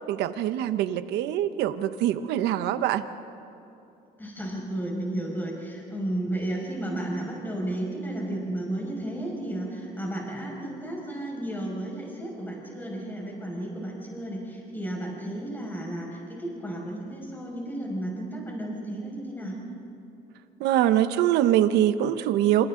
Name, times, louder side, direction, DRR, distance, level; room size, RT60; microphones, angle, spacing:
voice 1, 0.1-3.0 20.6-22.7, right 11 dB, 85° right, 11 dB, 1.0 m, -23 dB
voice 2, 4.2-19.6, right 1 dB, 10° left, -2 dB, 5.9 m, -33 dB
27.5 x 27.0 x 3.9 m, 2.9 s
cardioid pair, 110°, 17 cm